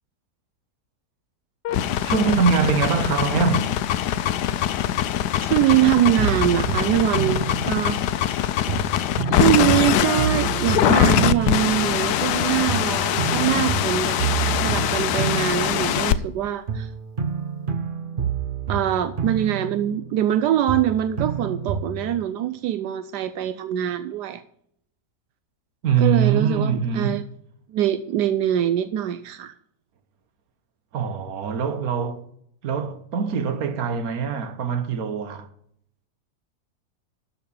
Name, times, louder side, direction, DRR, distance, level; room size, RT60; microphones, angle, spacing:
sound 1, 1.6-16.2, left 11 dB, 85° left, 1.2 m, -23 dB
voice 1, 2.0-3.7 25.8-27.2 30.9-32.2 32.6-35.5, right 6 dB, 65° right, 1.5 m, -23 dB
voice 2, 5.5-8.0 9.3-14.2 14.6-16.9 18.7-24.4 26.0-27.2 27.7-29.5, right 11 dB, 85° right, 1.2 m, -23 dB
sound 2, 6.2-8.3 8.7-12.4 12.7-16.3 16.7-20.4 20.7-22.3, right 7 dB, 40° right, 0.9 m, -29 dB
12.5 x 4.9 x 7.0 m
omnidirectional pair, 1.7 m